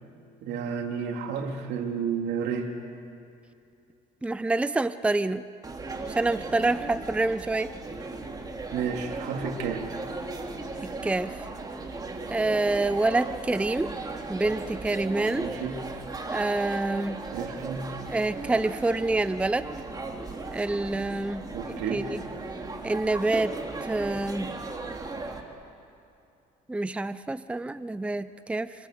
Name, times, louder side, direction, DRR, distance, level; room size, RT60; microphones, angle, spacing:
voice 1, 0.4-2.7 8.7-9.9 15.3-15.8 17.3-17.9 21.5-22.0, right 6 dB, 85° right, 2 dB, 3.2 m, -31 dB
voice 2, 4.2-5.4 6.1-7.7 10.8-11.4 12.3-13.9 14.3-15.5 16.3-17.2 18.1-19.7 20.5-22.2 22.8-24.5 26.7-28.7, right 2 dB, 5° right, 13 dB, 0.6 m, -27 dB
sound 1, 5.6-25.4, right 3 dB, 20° right, 2.9 m, -37 dB
26.0 x 26.0 x 7.9 m, 2.6 s
cardioid pair, 110°, 17 cm